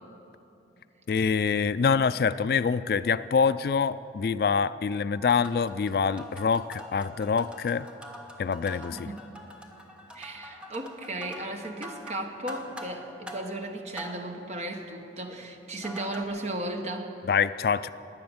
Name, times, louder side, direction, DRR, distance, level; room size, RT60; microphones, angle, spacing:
voice 1, 1.1-7.9 8.4-9.1 17.3-17.9, left 6 dB, 55° left, 15 dB, 0.3 m, -25 dB
sound 1, 5.3-16.2, equal, 5° right, 1.1 m, -45 dB
voice 2, 8.9-9.4 10.1-17.1, right 1 dB, 35° right, 4 dB, 1.2 m, -35 dB
21.0 x 8.6 x 7.1 m, 2.9 s
head